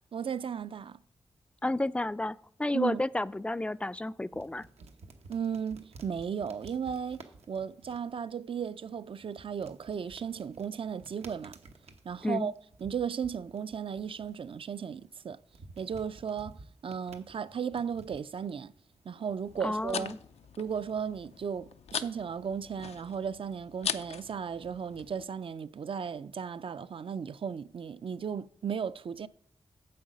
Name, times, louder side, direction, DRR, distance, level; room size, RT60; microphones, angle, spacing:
voice 1, 0.1-1.0 2.7-3.0 5.3-11.6 12.0-12.5 12.8-15.4 15.8-16.6 16.8-18.7 19.1-20.1 20.6-29.3, right 7 dB, 55° right, 0.4 m, -35 dB
voice 2, 1.6-4.7 12.2-12.5 19.6-20.2, left 2 dB, 10° left, 0.3 m, -31 dB
sound 1, 3.3-21.5, right 3 dB, 90° right, 1.0 m, -55 dB
sound 2, 19.4-25.3, left 8 dB, 85° left, 0.5 m, -41 dB
8.5 x 7.2 x 5.2 m
cardioid pair, 70°, 11 cm